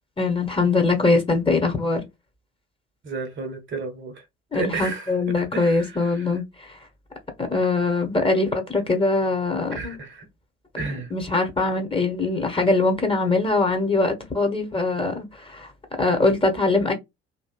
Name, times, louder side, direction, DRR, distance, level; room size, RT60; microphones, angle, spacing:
voice 1, 0.2-2.0 4.5-6.8 7.4-10.0 11.1-15.7 16.0-16.9, left 3 dB, 15° left, 0.9 m, -22 dB
voice 2, 3.0-4.2 4.5-6.4 9.7-10.3 10.8-11.1, right 4 dB, 35° right, 0.9 m, -32 dB
2.7 x 2.7 x 2.2 m
figure-of-eight pair, 55°, 35 cm